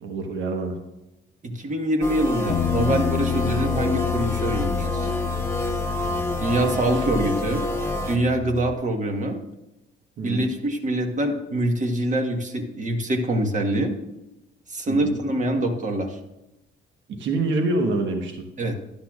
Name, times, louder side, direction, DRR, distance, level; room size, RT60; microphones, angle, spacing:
voice 1, 0.0-0.8 6.9-7.0 10.2-10.5 14.9-15.2 17.1-18.5, right 2 dB, 70° right, 4 dB, 1.3 m, -26 dB
voice 2, 1.4-5.1 6.4-7.6 8.1-9.4 10.2-13.9 14.7-16.2 18.6-18.7, right 1 dB, 40° right, 4 dB, 1.4 m, -24 dB
sound 1, 2.0-8.2, left 1 dB, 15° left, 1.2 m, -28 dB
Bass guitar, 2.5-8.7, left 10 dB, 50° left, 0.4 m, -30 dB
12.5 x 10.5 x 2.4 m, 0.93 s
cardioid pair, 90°, 20 cm